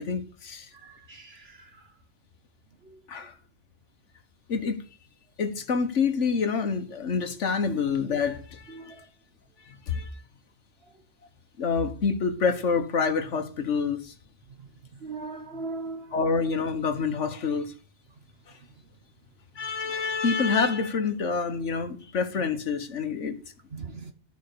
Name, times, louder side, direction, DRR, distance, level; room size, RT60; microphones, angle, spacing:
voice 1, 0.0-0.7 3.1-3.3 4.5-4.8 5.4-8.9 9.7-10.1 11.6-14.1 16.1-17.7 19.6-23.3, left 5 dB, 75° left, 1.6 m, -27 dB
voice 2, 0.8-1.7 7.7-7.8 8.7-8.9 15.0-16.1 23.7-24.1, right 3 dB, 60° right, 1.3 m, -38 dB
13.0 x 5.4 x 6.8 m
omnidirectional pair, 1.2 m